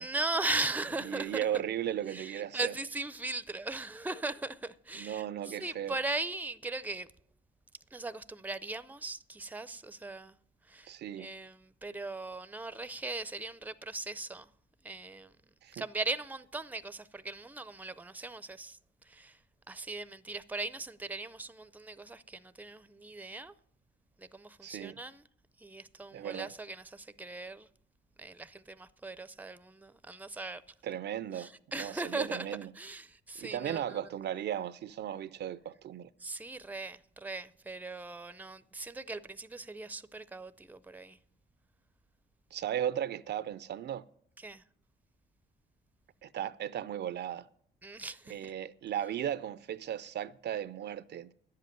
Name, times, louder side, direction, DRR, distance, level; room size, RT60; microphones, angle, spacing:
voice 1, 0.0-1.6 2.1-7.1 7.9-10.3 10.7-10.9 11.2-14.5 14.8-15.3 15.7-18.8 19.0-19.4 19.7-23.5 24.2-25.2 25.6-27.7 28.2-30.6 31.3-32.5 32.7-34.0 36.2-41.2 44.4-44.6 47.8-48.5, right 2 dB, 10° right, 0.5 m, -39 dB
voice 2, 1.0-2.7 4.9-6.0 10.9-11.3 15.6-15.9 24.6-25.0 26.1-26.5 30.8-31.5 31.8-32.7 33.4-36.1 42.5-44.1 46.2-47.5 48.3-51.3, right 10 dB, 60° right, 0.5 m, -36 dB
10.5 x 7.6 x 9.3 m
cardioid pair, 90°, 20 cm